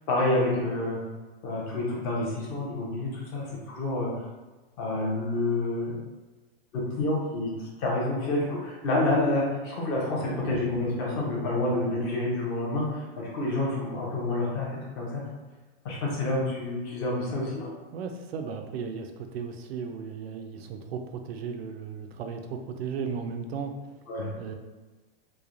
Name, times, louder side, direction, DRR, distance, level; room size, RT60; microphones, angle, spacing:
voice 1, 0.1-1.0 1.4-4.1 4.8-6.0 6.7-7.5 7.8-15.2 15.8-17.7 24.1-24.3, left 2 dB, 25° left, -4 dB, 0.4 m, -28 dB
voice 2, 10.1-10.5 17.9-24.0 24.3-24.5, right 6 dB, 75° right, 5 dB, 0.4 m, -36 dB
3.1 x 2.0 x 2.4 m, 1.2 s
supercardioid pair, 160°, 31 cm